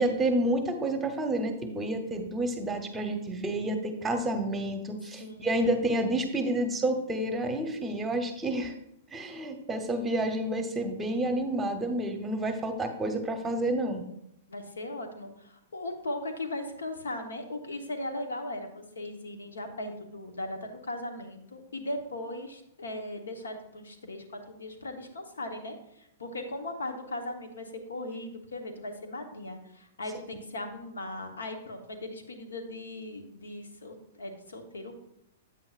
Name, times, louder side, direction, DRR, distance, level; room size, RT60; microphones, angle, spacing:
voice 1, 0.0-8.7 9.1-14.0 30.3-30.4, right 1 dB, 15° right, 6 dB, 0.9 m, -29 dB
voice 2, 5.2-5.8 14.5-34.9, left 1 dB, 90° left, 5 dB, 1.1 m, -38 dB
8.6 x 7.6 x 2.5 m, 0.80 s
hypercardioid pair, 120°, 0 cm